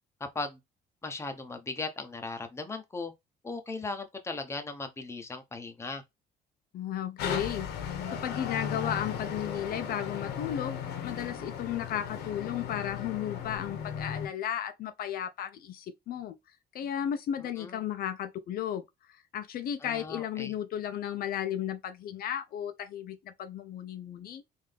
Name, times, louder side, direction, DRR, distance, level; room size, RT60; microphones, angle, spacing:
voice 1, 1.0-3.1 3.4-6.0 17.6-17.8 19.8-20.5, left 3 dB, 15° left, 0.8 m, -37 dB
voice 2, 6.7-16.3 16.7-18.8 19.1-24.4, left 10 dB, 60° left, 0.6 m, -34 dB
Garbage truck passing with ambient noise, 7.2-14.3, left 7 dB, 80° left, 1.1 m, -36 dB
3.8 x 2.7 x 3.3 m
cardioid pair, 110°, 17 cm